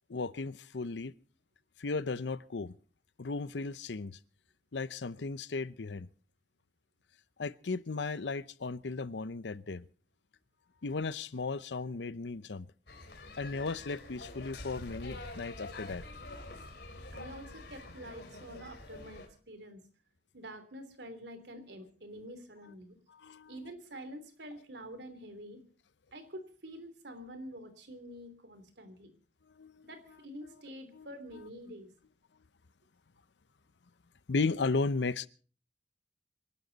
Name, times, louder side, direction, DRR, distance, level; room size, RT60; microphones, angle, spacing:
voice 1, 0.1-1.1 1.8-2.7 3.2-4.2 4.7-6.1 7.4-9.8 10.8-12.7 13.4-16.1 23.1-23.5 29.6-29.9 30.9-31.1 34.3-35.3, left 3 dB, 85° left, 0.7 m, -35 dB
sound 1, 12.9-19.3, left 2 dB, 70° left, 3.4 m, -46 dB
voice 2, 17.1-19.8 20.3-23.0 23.5-25.6 26.1-29.1 29.8-31.9, equal, 75° right, 3.1 m, -47 dB
27.0 x 12.0 x 4.0 m
head